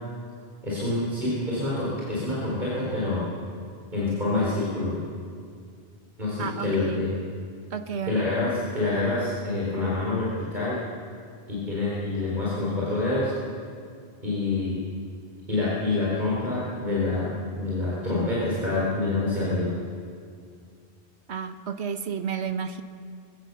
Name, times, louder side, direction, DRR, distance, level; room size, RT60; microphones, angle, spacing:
voice 1, 0.6-3.2 3.9-5.0 6.2-7.1 8.0-10.8 11.5-13.3 14.2-14.8 15.5-17.3 17.5-19.7, left 2 dB, 45° right, -7 dB, 4.7 m, -27 dB
voice 2, 6.4-7.0 7.7-8.3 21.3-22.8, right 6 dB, 85° right, 9 dB, 1.3 m, -32 dB
24.0 x 16.0 x 6.9 m, 2.2 s
omnidirectional pair, 1.1 m